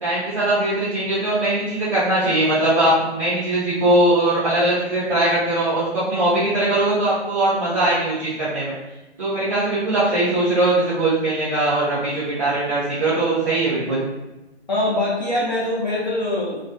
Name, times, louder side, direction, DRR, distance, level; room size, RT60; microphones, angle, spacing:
voice 1, 0.0-8.7 9.2-14.0, right 1 dB, 30° right, -12 dB, 0.6 m, -20 dB
voice 2, 14.7-16.6, left 1 dB, 40° left, -7 dB, 0.6 m, -23 dB
2.4 x 2.2 x 2.4 m, 1.0 s
figure-of-eight pair, 155°, 34 cm